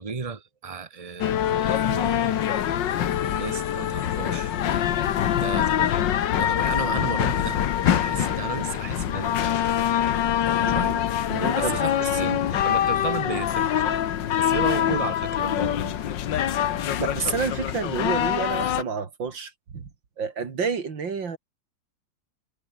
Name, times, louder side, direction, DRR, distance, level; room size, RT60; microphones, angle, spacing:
voice 1, 0.0-4.5 5.3-6.0 6.3-7.6 7.8-9.5 10.7-10.9 11.5-14.0 14.4-15.9, right 5 dB, 20° right, 1.4 m, -34 dB
sound 1, 1.2-18.8, left 10 dB, 75° left, 1.8 m, -24 dB
voice 2, 10.6-11.0 11.3-12.4 17.0-19.9 20.2-21.4, right 5 dB, 75° right, 3.2 m, -30 dB
omnidirectional pair, 2.0 m